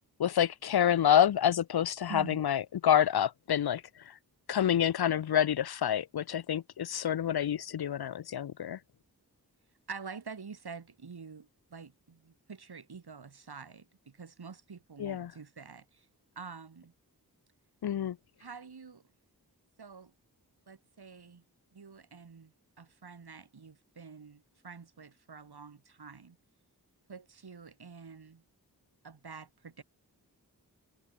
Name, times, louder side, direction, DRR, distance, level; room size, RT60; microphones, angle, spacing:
voice 1, 0.2-3.8 4.5-8.8 15.0-15.3 17.8-18.2, left 9 dB, 75° left, 0.7 m, -27 dB
voice 2, 2.1-2.4 9.9-16.1 16.4-16.9 18.4-19.0 19.8-20.1 20.7-21.4 21.7-26.4 27.1-28.4 29.0-29.8, right 5 dB, 80° right, 5.5 m, -47 dB
wide cardioid pair, 60°, 38 cm